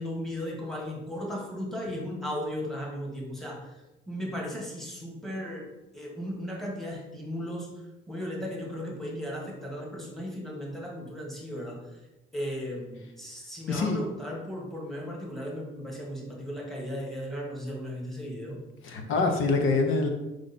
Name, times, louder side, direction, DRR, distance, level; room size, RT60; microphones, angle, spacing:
voice 1, 0.0-3.7 4.1-7.7 8.1-11.8 12.3-18.6, equal, ahead, -2 dB, 1.5 m, -36 dB
voice 2, 13.7-14.0 18.8-20.1, left 3 dB, 70° left, 4 dB, 0.9 m, -25 dB
5.0 x 4.9 x 4.1 m, 0.98 s
cardioid pair, 125°, 21 cm